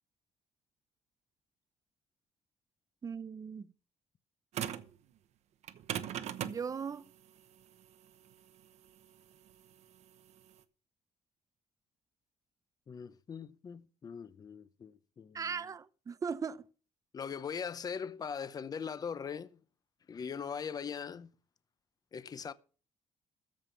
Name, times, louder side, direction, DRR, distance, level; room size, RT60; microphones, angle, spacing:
voice 1, 3.0-3.7 6.4-7.1 15.3-16.7, right 6 dB, 30° right, 0.7 m, -38 dB
sound 1, 4.5-5.0 5.6-10.6, right 10 dB, 70° right, 0.9 m, -40 dB
voice 2, 12.9-15.6 17.1-19.6 20.1-21.3 22.1-22.5, left 6 dB, 35° left, 0.7 m, -41 dB
14.0 x 5.4 x 7.4 m
cardioid pair, 135°, 12 cm